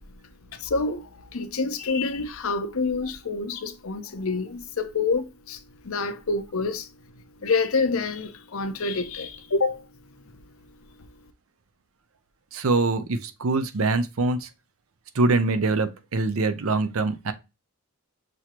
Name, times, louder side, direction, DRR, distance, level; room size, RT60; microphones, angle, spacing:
voice 1, 0.6-5.6 5.8-6.9 7.4-9.8, left 4 dB, 70° left, 0.7 m, -27 dB
voice 2, 12.5-14.5 15.1-17.3, right 3 dB, 70° right, 0.6 m, -24 dB
6.2 x 2.8 x 2.9 m
head